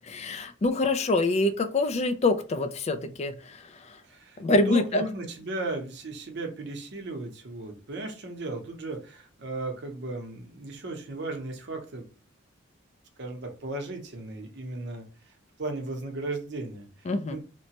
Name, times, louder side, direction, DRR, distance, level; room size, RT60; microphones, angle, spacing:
voice 1, 0.0-4.0 4.4-5.0 17.1-17.4, left 2 dB, 35° left, 8 dB, 0.3 m, -26 dB
voice 2, 4.0-12.1 13.2-15.3 15.6-17.4, right 2 dB, 60° right, 4 dB, 0.7 m, -36 dB
3.0 x 2.1 x 2.8 m, 0.35 s
head